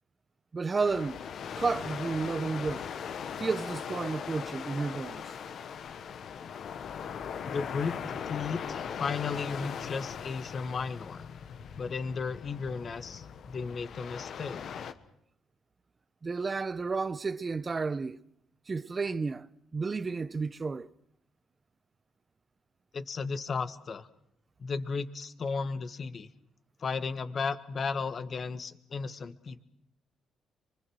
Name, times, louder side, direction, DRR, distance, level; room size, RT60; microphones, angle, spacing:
voice 1, 0.5-1.3 1.6-2.8 3.4-5.2 16.2-18.2 18.7-20.9, right 4 dB, 30° right, 0.8 m, -32 dB
sound 1, 0.8-14.9, left 7 dB, 65° left, 1.3 m, -40 dB
voice 2, 7.4-11.2 11.7-14.6 22.9-24.1 24.6-26.3 26.8-29.6, left 5 dB, 45° left, 1.5 m, -35 dB
24.5 x 24.0 x 6.3 m
cardioid pair, 90°, 0 cm